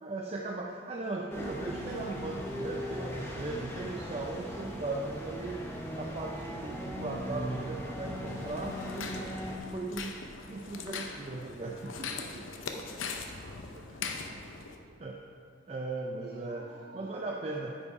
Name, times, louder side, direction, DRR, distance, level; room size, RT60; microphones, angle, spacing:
voice 1, 0.0-9.4 9.7-10.1 10.5-12.5 15.0-15.2 15.7-17.8, right 2 dB, 30° right, 0 dB, 0.4 m, -38 dB
sound 1, 1.3-9.6, equal, 10° left, 0.7 m, -38 dB
sound 2, 8.3-14.8, left 4 dB, 85° left, 0.7 m, -41 dB
voice 2, 13.2-15.0 16.2-17.3, right 1 dB, 50° right, 0 dB, 1.0 m, -54 dB
9.5 x 5.4 x 4.6 m, 2.3 s
head